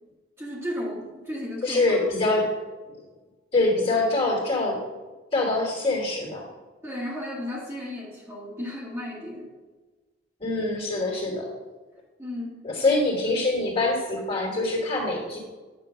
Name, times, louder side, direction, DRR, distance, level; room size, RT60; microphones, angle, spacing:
voice 1, 0.4-2.0 6.8-9.5 12.2-12.5, left 1 dB, 15° right, -6 dB, 1.8 m, -34 dB
voice 2, 1.6-2.5 3.5-4.8 5.3-6.4 10.4-11.5 12.6-15.4, left 2 dB, 30° left, -2 dB, 2.9 m, -24 dB
9.9 x 3.7 x 6.8 m, 1.3 s
head